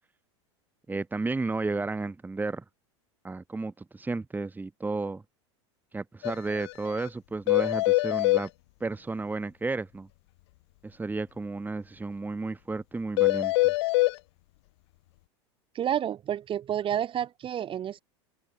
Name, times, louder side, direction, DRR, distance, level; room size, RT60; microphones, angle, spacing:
voice 1, 0.9-2.6 3.2-5.2 5.9-8.5 8.8-10.1 10.8-13.7, right 3 dB, 10° right, 3.6 m, -33 dB
sound 1, 6.2-6.3 6.6-6.7 7.0-7.1 7.5-8.4 13.2-14.1, left 21 dB, 65° left, 0.6 m, -23 dB
voice 2, 15.7-18.0, right 10 dB, 35° right, 4.6 m, -30 dB
open air
hypercardioid pair, 100°, 15 cm